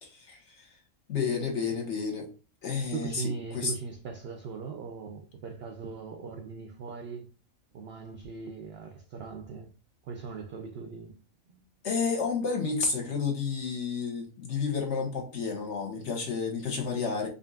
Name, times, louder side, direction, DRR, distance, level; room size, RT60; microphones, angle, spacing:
voice 1, 0.0-0.7 1.1-2.3 2.6-3.7 11.8-17.3, left 5 dB, 55° left, 1.2 m, -31 dB
voice 2, 2.9-7.3 7.7-9.7 10.0-11.2 11.5-11.6, right 5 dB, 65° right, 0.6 m, -39 dB
5.1 x 2.5 x 2.3 m
omnidirectional pair, 1.5 m